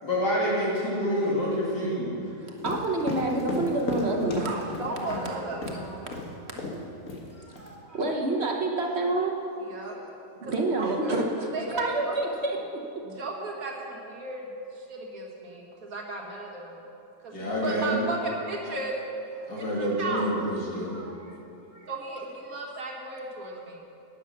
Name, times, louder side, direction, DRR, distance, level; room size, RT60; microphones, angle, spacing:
voice 1, 0.0-2.2 4.9-5.6 17.3-18.1 19.5-21.0, equal, 90° left, -5 dB, 3.3 m, -28 dB
voice 2, 2.4-4.7 5.7-6.1 6.5-6.8 7.3-9.3 10.4-11.5 11.8-12.6 20.9-21.3 21.7-21.8, right 2 dB, 45° right, 0 dB, 1.2 m, -29 dB
sound 1, 2.6-5.3 5.6-5.8 6.1-6.3 6.6-6.8 7.1-7.7, left 2 dB, 55° left, 1.9 m, -34 dB
voice 3, 4.8-6.1 9.7-10.0 10.4-11.2 11.5-12.2 13.0-14.5 14.8-16.7 17.2-18.9 19.5-20.3 21.9-23.8, right 3 dB, 60° right, -1 dB, 2.0 m, -35 dB
12.0 x 10.0 x 6.0 m, 2.8 s
omnidirectional pair, 1.7 m